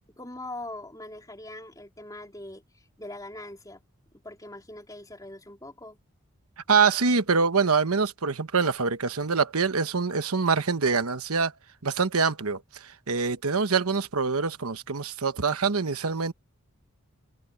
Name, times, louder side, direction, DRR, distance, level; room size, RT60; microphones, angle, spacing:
voice 1, 0.2-3.8 4.2-6.0, left 1 dB, 15° left, 3.5 m, -42 dB
voice 2, 6.7-11.5 11.8-16.3, right 5 dB, 80° right, 1.1 m, -25 dB
open air
head